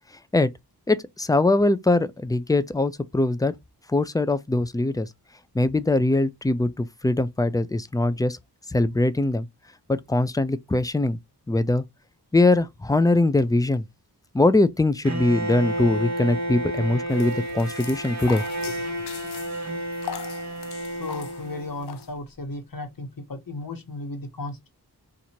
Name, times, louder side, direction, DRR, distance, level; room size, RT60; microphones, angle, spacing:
voice 1, 0.9-3.5 3.9-5.1 5.5-8.4 8.7-9.5 9.9-11.2 11.5-11.8 12.3-13.8 14.3-18.7, left 2 dB, 10° left, 0.4 m, -22 dB
Bowed string instrument, 15.0-22.0, right 1 dB, 45° right, 1.1 m, -31 dB
sound 1, 17.1-22.1, left 10 dB, 75° left, 0.5 m, -41 dB
voice 2, 21.0-24.7, left 2 dB, 60° left, 1.2 m, -35 dB
2.8 x 2.6 x 4.3 m
cardioid pair, 45°, 40 cm